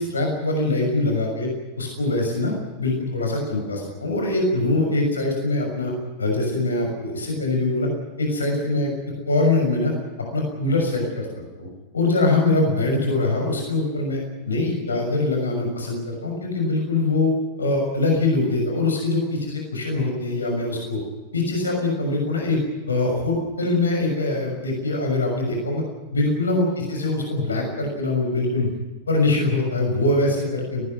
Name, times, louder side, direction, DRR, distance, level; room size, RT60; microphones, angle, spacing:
voice 1, 0.0-1.5 1.8-2.5 2.8-5.9 6.2-7.9 8.2-8.9 9.3-9.9 10.3-11.3 11.6-11.7 11.9-14.2 14.4-17.3 17.6-21.0 21.3-22.6 22.9-25.8 26.1-28.7 29.1-30.8, left 2 dB, 75° left, 1 dB, 6.4 m, -23 dB
19.5 x 19.5 x 9.7 m, 1.2 s
figure-of-eight pair, 90°, 0 cm